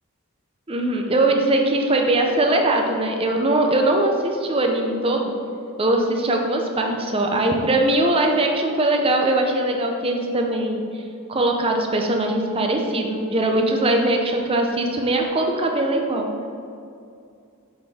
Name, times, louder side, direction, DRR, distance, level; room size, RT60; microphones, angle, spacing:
voice 1, 0.7-5.3 5.8-11.0 11.3-16.3, right 1 dB, 25° right, 2 dB, 0.6 m, -21 dB
7.8 x 4.4 x 3.5 m, 2.5 s
head